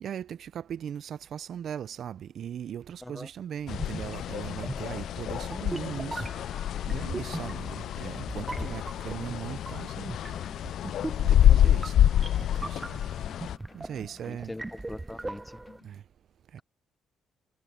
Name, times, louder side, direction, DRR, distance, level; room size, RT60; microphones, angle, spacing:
voice 1, 0.0-6.2 6.9-10.1 11.5-12.1 12.6-12.8 13.7-14.5 15.8-16.0 16.5-16.6, right 9 dB, 65° right, 0.5 m, -38 dB
sound 1, 3.7-13.6, left 11 dB, 70° left, 0.3 m, -27 dB
sound 2, 3.7-15.8, right 2 dB, 15° right, 0.5 m, -40 dB
sound 3, 8.6-16.0, left 4 dB, 30° left, 1.3 m, -53 dB
voice 2, 14.3-15.6, left 1 dB, 10° left, 1.0 m, -42 dB
cardioid pair, 90°, 0 cm